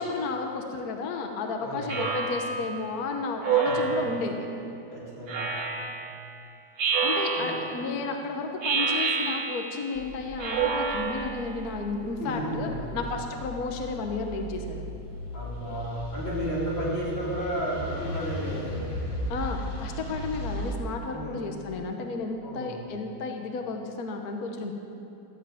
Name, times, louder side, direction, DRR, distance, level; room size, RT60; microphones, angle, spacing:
voice 1, 0.0-4.5 7.0-15.0 19.3-24.7, left 4 dB, 60° left, 3 dB, 1.3 m, -32 dB
voice 2, 1.6-2.0 3.6-3.9 4.9-5.5 7.3-7.6 12.2-13.0 15.3-18.9 21.1-21.4 22.4-22.8, equal, 90° left, -8 dB, 4.6 m, -33 dB
Speech synthesizer, 1.9-2.7 3.4-4.3 5.3-6.1 6.8-7.8 8.6-9.8 10.4-11.4, right 5 dB, 65° right, 1.8 m, -28 dB
sound 1, 9.9-20.7, equal, 30° left, 1.4 m, -37 dB
13.5 x 7.2 x 8.8 m, 2.8 s
omnidirectional pair, 2.1 m